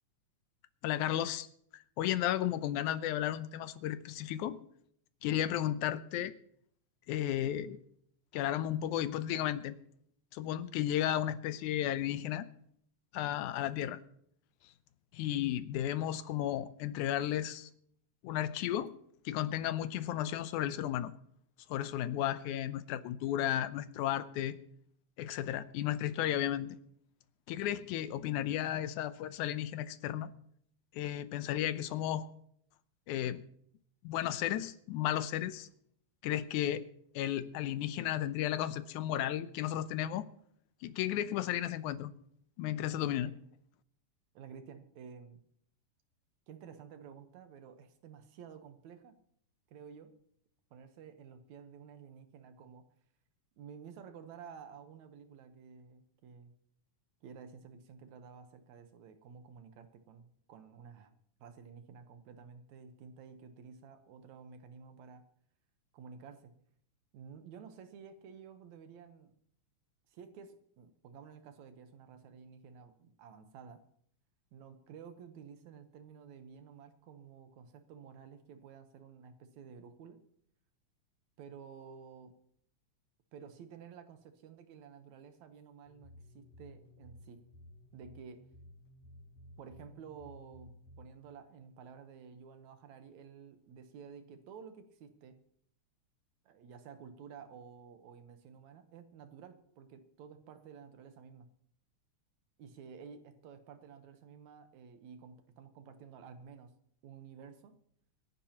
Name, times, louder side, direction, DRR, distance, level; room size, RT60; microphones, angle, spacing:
voice 1, 0.8-1.5 2.0-4.6 5.2-6.3 7.1-7.8 8.3-9.7 10.3-12.5 13.1-14.0 15.1-17.7 18.2-18.9 19.3-21.1 21.7-24.6 25.2-26.8 27.5-30.3 30.9-32.3 33.1-33.4 34.0-35.7 36.2-36.9 37.2-40.3 40.8-42.1 42.6-43.3, left 12 dB, 90° left, 13 dB, 2.2 m, -34 dB
voice 2, 44.3-45.4 46.5-49.2 49.7-50.2 50.7-52.9 53.6-56.6 57.2-61.1 61.4-65.3 65.9-66.6 67.1-69.4 70.1-73.8 74.5-80.2 81.4-82.4 83.3-87.5 87.9-88.5 89.6-95.4 96.5-101.5 102.6-106.7 107.0-107.8, right 6 dB, 75° right, 8 dB, 2.4 m, -52 dB
sound 1, 85.9-91.2, left 1 dB, 65° left, 6.7 m, -56 dB
26.0 x 11.0 x 2.9 m, 0.67 s
omnidirectional pair, 3.4 m